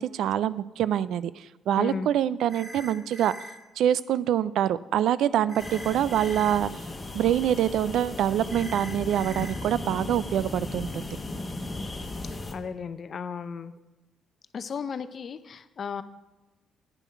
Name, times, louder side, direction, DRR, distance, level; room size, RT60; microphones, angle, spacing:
voice 1, 0.0-3.3 3.8-6.8 7.1-11.2, right 10 dB, 80° right, 18 dB, 0.3 m, -25 dB
voice 2, 1.8-2.1 12.2-13.7 14.5-16.0, left 6 dB, 50° left, 13 dB, 0.6 m, -35 dB
sound 1, 2.5-3.5 5.5-6.5 8.5-9.5, right 1 dB, 45° right, 3.6 m, -42 dB
sound 2, 5.6-12.5, left 2 dB, 25° left, 1.2 m, -36 dB
9.1 x 7.1 x 5.7 m, 1.1 s
cardioid pair, 90°, 0 cm